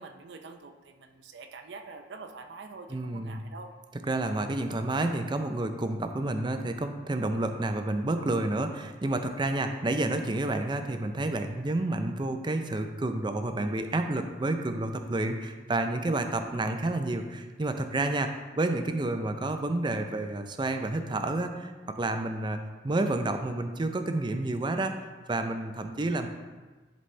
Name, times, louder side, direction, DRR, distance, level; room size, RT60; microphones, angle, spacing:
voice 1, 0.0-3.7, right 4 dB, 70° right, 5 dB, 0.5 m, -45 dB
voice 2, 2.9-3.4 4.1-18.3 18.6-22.6 22.8-24.9 25.3-26.3, right 2 dB, 25° right, 7 dB, 0.5 m, -30 dB
11.0 x 4.1 x 3.2 m, 1.3 s
head